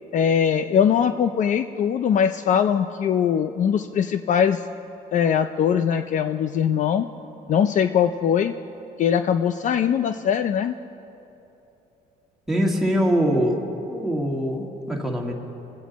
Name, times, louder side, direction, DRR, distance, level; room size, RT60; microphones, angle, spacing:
voice 1, 0.1-4.6 5.1-7.1 7.5-8.5 9.0-10.7, left 8 dB, 50° left, 10 dB, 0.4 m, -21 dB
voice 2, 12.5-13.6 13.9-15.3, equal, ahead, -2 dB, 1.9 m, -23 dB
23.0 x 8.4 x 4.1 m, 2.9 s
cardioid pair, 110°, 17 cm